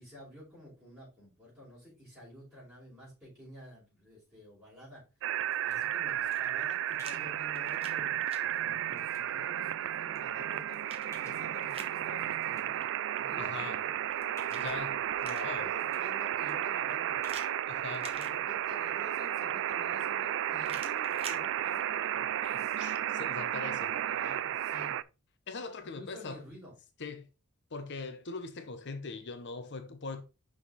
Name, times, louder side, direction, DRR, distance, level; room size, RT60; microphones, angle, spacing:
voice 1, 0.0-5.0 5.6-12.9 13.1-14.0 14.4-15.0 15.6-17.2 18.0-22.8 23.9-25.0 25.8-26.7, left 1 dB, 10° right, 5.0 m, -51 dB
sound 1, 4.8-6.4 7.0-7.3 8.0-8.1 8.6-9.5 10.1-10.2 11.1-11.7 12.1-12.8 13.3-13.4 13.6-13.7 14.4-14.7 15.3-15.4 15.6-16.2 16.5-16.6 17.2-17.6, left 3 dB, 15° left, 1.8 m, -60 dB
sound 2, 5.2-25.0, right 11 dB, 60° right, 0.3 m, -33 dB
sound 3, 6.1-7.2 7.5-8.4 10.1-12.0 14.0-15.7 17.2-18.8 20.6-21.4, right 4 dB, 25° right, 1.3 m, -48 dB
voice 2, 13.4-13.8 14.6-15.0 15.2-15.7 17.7-18.1 22.8-24.0 25.5-26.4 27.0-27.3 27.7-30.2, left 4 dB, 50° left, 0.8 m, -41 dB
6.3 x 5.7 x 4.1 m
head